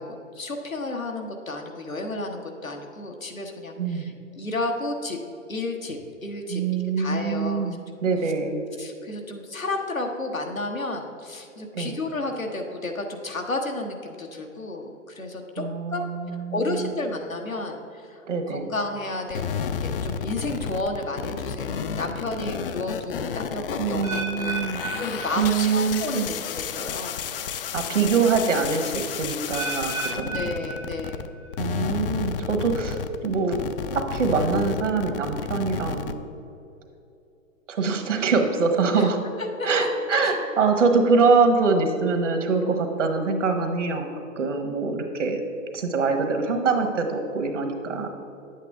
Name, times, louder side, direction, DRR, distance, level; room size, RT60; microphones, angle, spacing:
voice 1, 0.0-5.2 5.5-7.8 8.2-8.3 8.8-15.6 15.9-18.2 18.5-24.0 24.3-27.3 30.3-31.3 38.9-39.1 39.6-40.3, left 2 dB, 90° left, 2 dB, 1.2 m, -32 dB
voice 2, 6.5-8.6 11.7-12.0 15.6-16.9 18.3-18.7 23.8-24.8 25.4-26.3 27.7-30.5 31.6-33.7 33.9-36.2 37.7-39.2 39.6-44.1 44.4-45.4 45.7-48.1, right 4 dB, 65° right, 5 dB, 1.4 m, -24 dB
sound 1, 19.3-31.3 31.5-36.1, left 7 dB, 45° left, 0.5 m, -31 dB
sound 2, 24.0-26.0 26.3-26.7 27.4-27.5 29.5-31.5 31.8-32.2 32.9-33.0, right 3 dB, 10° right, 0.4 m, -34 dB
9.8 x 8.2 x 3.5 m, 2.8 s
figure-of-eight pair, 115°, 39 cm